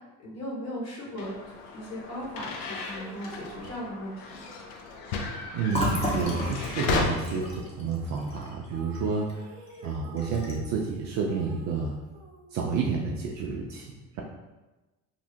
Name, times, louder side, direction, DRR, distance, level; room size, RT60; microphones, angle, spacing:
voice 1, 0.2-1.3 1.7-4.4, equal, 35° left, -4 dB, 1.1 m, -37 dB
sound 1, 1.2-7.0, left 4 dB, 65° left, 0.6 m, -34 dB
sound 2, 2.6-6.6 7.1-13.6, right 2 dB, 60° right, 0.8 m, -51 dB
voice 2, 5.2-9.5 9.8-11.9 12.5-14.2, right 4 dB, 40° right, -1 dB, 0.4 m, -30 dB
Fill (with liquid), 5.7-9.4 9.7-9.9 10.2-10.8, left 1 dB, 15° left, 0.7 m, -33 dB
2.8 x 2.0 x 2.7 m, 1.1 s
hypercardioid pair, 60°, 47 cm